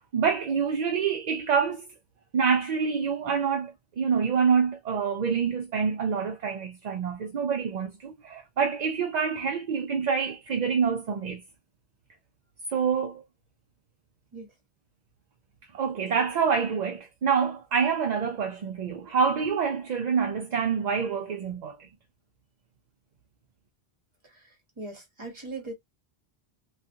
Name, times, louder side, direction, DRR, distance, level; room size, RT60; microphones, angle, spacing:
voice 1, 0.1-1.9 2.3-11.4 12.7-13.2 15.7-21.9, right 6 dB, 55° right, 0.5 m, -26 dB
voice 2, 24.8-25.7, right 3 dB, 30° right, 1.1 m, -39 dB
2.4 x 2.4 x 2.6 m
omnidirectional pair, 1.1 m